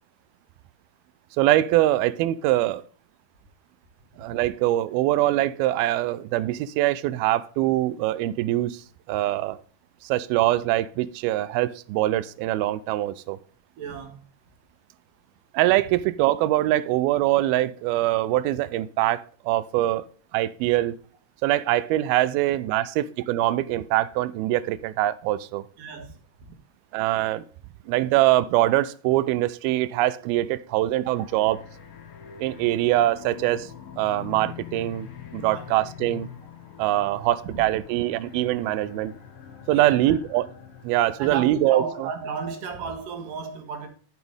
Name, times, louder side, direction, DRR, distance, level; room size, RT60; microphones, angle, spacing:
voice 1, 1.4-2.8 4.2-9.6 10.0-13.4 15.5-20.1 20.3-21.0 21.4-25.6 26.9-27.4 27.9-31.6 32.4-33.7 34.0-35.1 35.3-36.3 36.8-39.1 39.7-40.5 40.8-42.1, right 15 dB, 85° right, 2.5 m, -23 dB
voice 2, 13.8-14.2 22.8-22.9 25.8-26.1 26.4-26.6 31.1-31.2 35.5-35.7 37.4-37.6 39.7-40.2 41.2-43.9, right 6 dB, 70° right, 3.0 m, -34 dB
sound 1, 31.0-41.7, left 9 dB, 70° left, 3.4 m, -43 dB
13.0 x 6.1 x 3.5 m
omnidirectional pair, 4.3 m